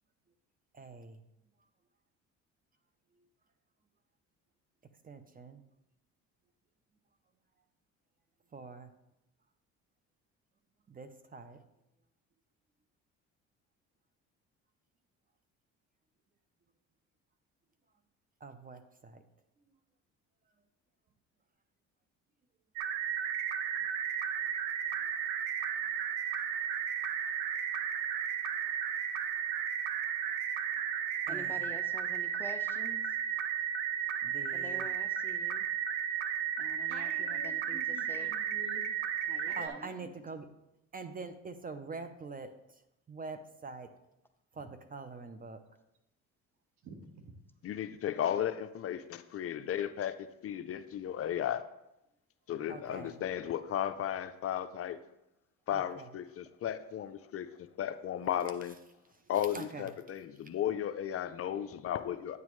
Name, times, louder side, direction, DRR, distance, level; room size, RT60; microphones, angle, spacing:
voice 1, 0.7-1.2 5.0-5.6 8.5-8.9 10.9-11.6 18.4-19.2 31.3-31.7 34.2-34.9 39.5-40.5 40.9-42.5 43.1-43.9 44.6-45.6 52.7-53.2 55.7-56.1 59.5-59.9, right 4 dB, 25° right, 9 dB, 0.7 m, -44 dB
sound 1, 22.8-39.7, right 8 dB, 90° right, 0.7 m, -34 dB
voice 2, 31.3-33.0 34.5-35.6 36.6-38.4 39.3-39.9, left 1 dB, 5° left, 5 dB, 0.8 m, -47 dB
voice 3, 36.9-38.9 39.5-40.1 44.6-44.7 46.8-47.4, right 3 dB, 60° right, 4 dB, 1.5 m, -49 dB
voice 4, 47.6-50.1 50.4-51.6 52.5-55.0 55.7-57.5 57.8-58.8 59.3-62.4, left 10 dB, 45° left, 10 dB, 0.5 m, -34 dB
9.4 x 7.2 x 3.2 m, 0.87 s
supercardioid pair, 85°, 31 cm